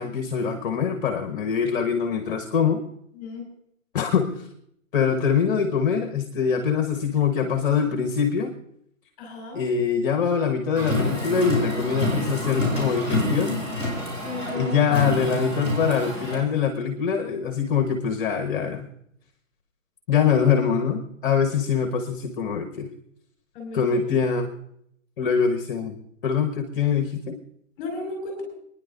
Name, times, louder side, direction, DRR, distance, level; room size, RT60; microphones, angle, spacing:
voice 1, 0.0-2.8 3.9-4.5 4.9-8.5 9.5-13.7 14.5-18.9 20.1-22.9 23.7-24.5 25.2-27.4, left 6 dB, 40° left, 6 dB, 1.3 m, -24 dB
voice 2, 3.1-3.5 9.2-9.6 14.2-14.8 23.5-24.0 27.8-28.4, left 3 dB, 25° left, 1 dB, 5.4 m, -34 dB
Car, 10.8-16.4, left 1 dB, 15° right, 5.4 m, -27 dB
27.5 x 10.0 x 2.6 m, 0.73 s
figure-of-eight pair, 135°, 40 cm